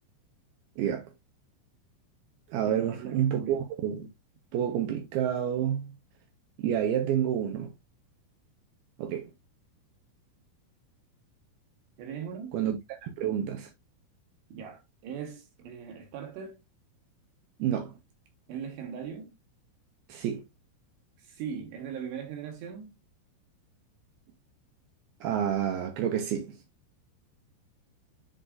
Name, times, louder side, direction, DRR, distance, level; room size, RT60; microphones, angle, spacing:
voice 1, 0.8-1.1 2.5-4.1 4.5-5.8 6.6-7.7 9.0-9.2 12.5-12.8 13.0-13.7 17.6-18.0 20.1-20.4 25.2-26.5, right 9 dB, 90° right, 2.2 m, -29 dB
voice 2, 2.6-3.6 12.0-12.6 14.5-16.6 18.5-19.3 21.2-23.0, right 7 dB, 70° right, 3.0 m, -40 dB
10.5 x 4.0 x 2.5 m
omnidirectional pair, 5.9 m